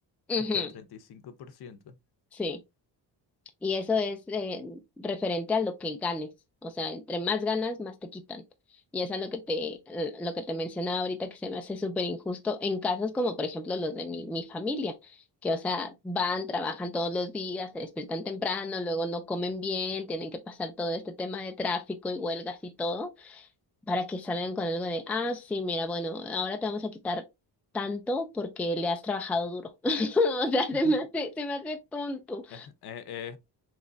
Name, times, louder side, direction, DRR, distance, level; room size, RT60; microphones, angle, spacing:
voice 1, 0.3-0.7 2.3-2.6 3.6-6.3 6.6-8.4 8.9-15.2 15.4-23.5 23.9-27.2 27.7-32.7, left 2 dB, 5° left, 0.3 m, -31 dB
voice 2, 1.1-1.9 30.8-30.9 32.5-33.4, left 8 dB, 65° left, 0.7 m, -42 dB
3.8 x 3.2 x 2.3 m
cardioid pair, 135°, 41 cm